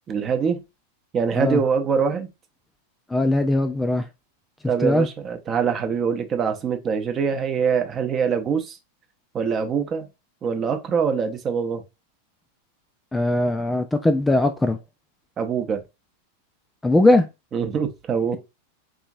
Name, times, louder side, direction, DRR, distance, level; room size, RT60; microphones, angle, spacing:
voice 1, 0.1-0.6 1.1-2.3 4.7-8.8 9.3-10.1 10.4-11.8 15.4-15.8 17.5-18.4, right 6 dB, 25° right, 0.7 m, -23 dB
voice 2, 3.1-4.1 4.8-5.1 13.1-14.8 16.8-17.3, left 2 dB, 10° left, 0.3 m, -20 dB
3.7 x 2.7 x 2.6 m
figure-of-eight pair, 90°, 0 cm